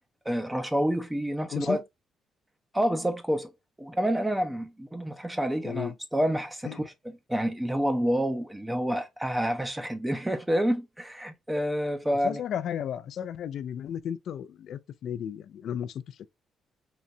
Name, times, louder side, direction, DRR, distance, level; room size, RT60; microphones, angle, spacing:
voice 1, 0.3-1.8 2.7-3.5 3.8-6.9 7.3-12.4, equal, 10° right, 0.5 m, -28 dB
voice 2, 1.5-1.8 5.6-6.0 6.6-6.8 12.2-16.3, left 9 dB, 70° left, 0.3 m, -34 dB
3.8 x 2.1 x 2.7 m
cardioid pair, 90°, 0 cm